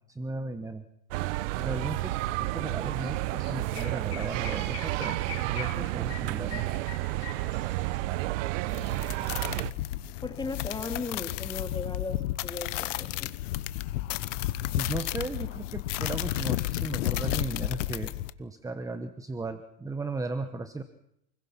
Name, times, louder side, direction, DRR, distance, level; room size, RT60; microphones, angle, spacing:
voice 1, 0.2-0.8 1.6-5.2 5.5-6.7 14.8-18.1 18.4-20.8, right 3 dB, 10° right, 9 dB, 1.1 m, -36 dB
sound 1, 1.1-9.7, right 17 dB, 80° right, 1.0 m, -31 dB
Chirp tweet, 3.0-3.1 3.4-8.0, left 9 dB, 40° left, 7.5 m, -42 dB
sound 2, 8.7-18.3, left 15 dB, 85° left, 1.1 m, -32 dB
voice 2, 10.2-13.3, left 3 dB, 10° left, 6 dB, 2.7 m, -37 dB
29.0 x 21.5 x 5.9 m, 0.78 s
supercardioid pair, 130°, 36 cm